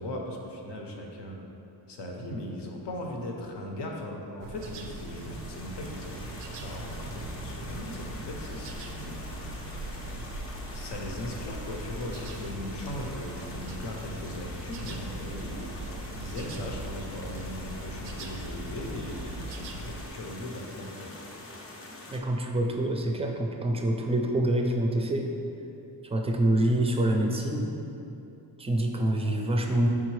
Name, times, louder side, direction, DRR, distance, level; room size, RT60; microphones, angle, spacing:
voice 1, 0.0-1.4 1.9-6.2 6.6-9.2 10.6-15.7 16.1-21.1, left 1 dB, 70° left, 1 dB, 0.7 m, -38 dB
sound 1, 4.4-20.1, right 1 dB, 85° right, 0.5 m, -39 dB
sound 2, 4.6-22.2, left 2 dB, 35° left, 0.6 m, -45 dB
voice 2, 22.1-25.3 26.0-27.7 28.6-29.9, right 1 dB, 15° right, 2 dB, 0.4 m, -26 dB
4.7 x 3.6 x 3.1 m, 2.8 s
cardioid pair, 80°, 43 cm